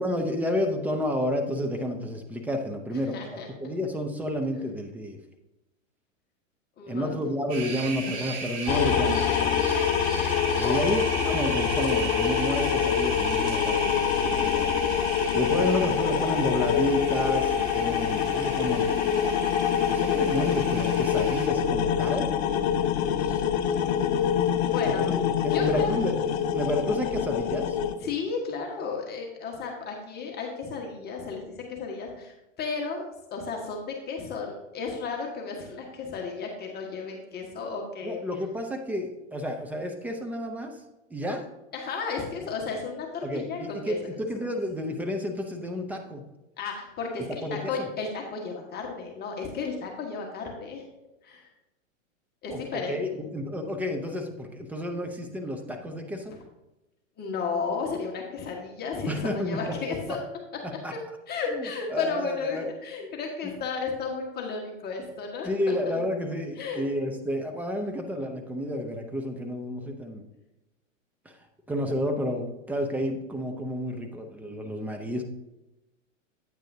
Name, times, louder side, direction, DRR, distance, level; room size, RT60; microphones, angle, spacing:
voice 1, 0.0-5.2 6.9-10.0 10.6-18.9 19.9-22.3 23.1-24.0 24.9-26.2 26.5-27.8 38.0-40.8 41.1-41.4 43.2-46.2 47.4-47.9 52.5-56.3 59.1-59.8 60.1-60.2 60.6-60.9 61.5-61.7 61.9-62.7 63.0-63.2 65.4-70.2 71.3-71.4 71.7-75.2, equal, 5° right, 3 dB, 0.4 m, -31 dB
voice 2, 2.9-3.5 6.8-7.3 10.6-10.8 24.6-25.0 25.5-26.0 28.0-38.2 41.7-44.0 46.6-50.8 51.2-51.5 52.4-53.2 57.2-60.2 60.9-61.0 61.3-65.9 66.6-66.8, left 4 dB, 25° left, 0 dB, 1.4 m, -33 dB
sound 1, 7.5-21.5, right 4 dB, 45° right, 2.4 m, -36 dB
sound 2, 8.7-28.0, left 8 dB, 55° left, 0.7 m, -25 dB
9.1 x 8.8 x 2.7 m, 0.98 s
hypercardioid pair, 115°, 39 cm